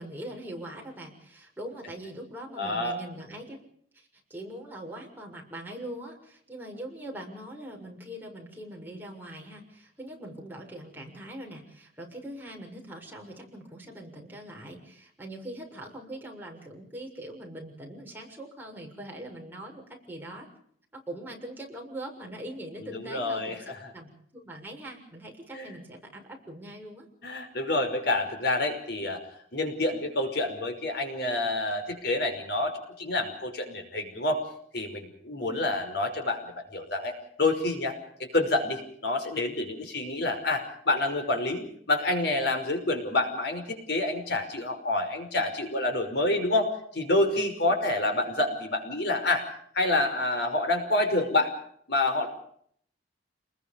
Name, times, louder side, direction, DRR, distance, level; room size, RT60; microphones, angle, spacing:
voice 1, 0.0-3.6 3.9-20.5 20.9-23.6 23.9-27.1 35.4-35.8 47.7-47.8, right 1 dB, 10° right, 0 dB, 6.8 m, -42 dB
voice 2, 2.6-3.0 22.8-23.9 25.5-25.7 27.2-29.2 29.5-34.4 34.7-49.5 49.7-51.5 51.9-52.3, left 2 dB, 65° left, 6 dB, 5.5 m, -28 dB
29.0 x 21.0 x 5.3 m, 0.65 s
head